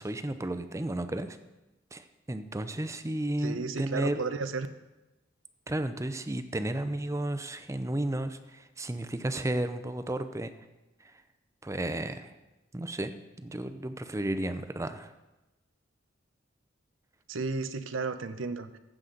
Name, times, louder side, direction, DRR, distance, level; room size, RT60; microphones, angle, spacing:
voice 1, 0.0-1.4 1.9-4.2 5.7-10.5 11.6-12.3 12.7-15.1, right 1 dB, 15° right, 10 dB, 0.6 m, -33 dB
voice 2, 3.4-4.7 17.3-18.8, right 4 dB, 90° right, 11 dB, 0.7 m, -33 dB
15.0 x 7.9 x 3.9 m, 1.0 s
head